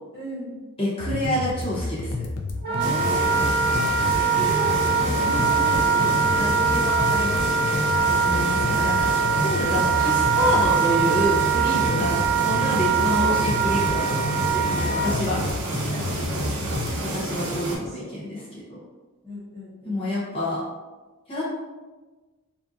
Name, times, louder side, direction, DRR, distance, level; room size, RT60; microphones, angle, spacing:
voice 1, 0.1-0.6 2.7-3.8 4.2-9.1 11.8-12.2 12.9-13.5 14.7-15.5 15.9-16.5 17.7-18.2 19.2-20.1, equal, 15° right, -11 dB, 0.8 m, -35 dB
voice 2, 0.8-2.2 8.2-9.1 9.4-15.4 17.0-18.8 19.8-20.6 21.3-21.5, left 1 dB, 25° left, -7 dB, 0.6 m, -27 dB
sound 1, 1.0-17.0, left 2 dB, 70° left, 0.4 m, -31 dB
Wind instrument woodwind instrument, 2.6-15.1, right 6 dB, 45° right, 0.5 m, -23 dB
sound 2, 2.8-17.8, right 1 dB, 90° right, 0.6 m, -30 dB
2.6 x 2.4 x 2.4 m, 1.2 s
head